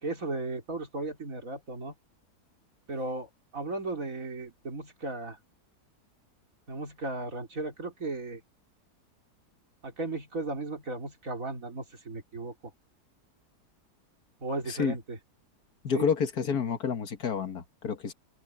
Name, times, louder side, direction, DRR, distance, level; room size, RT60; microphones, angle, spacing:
voice 1, 0.0-1.9 2.9-5.4 6.7-8.4 9.8-12.5 14.4-15.2 15.9-16.1, right 2 dB, 55° right, 3.7 m, -35 dB
voice 2, 14.7-15.0 15.8-18.1, left 6 dB, 70° left, 2.0 m, -29 dB
open air
omnidirectional pair, 1.7 m